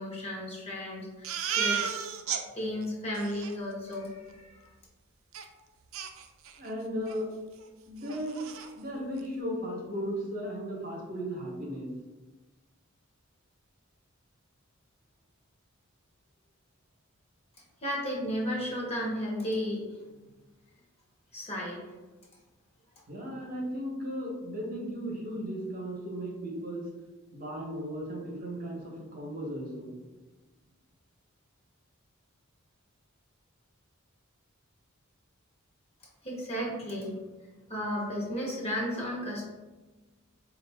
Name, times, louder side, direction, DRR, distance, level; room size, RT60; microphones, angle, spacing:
voice 1, 0.0-2.0 2.5-4.7 17.8-20.1 21.3-21.8 36.2-37.2 37.7-39.5, equal, 30° left, -3 dB, 1.1 m, -34 dB
Crying sobbing, 1.2-2.4 2.8-2.9 3.1-3.5 5.3-5.4 5.9-6.7 7.1-7.2 7.6-7.7 8.0-8.7, right 7 dB, 75° right, 0.4 m, -33 dB
voice 2, 6.6-7.3 7.9-8.4 8.7-11.9 23.1-26.9 27.3-29.9, equal, 45° right, -2 dB, 0.9 m, -36 dB
4.6 x 2.5 x 3.4 m, 1.2 s
head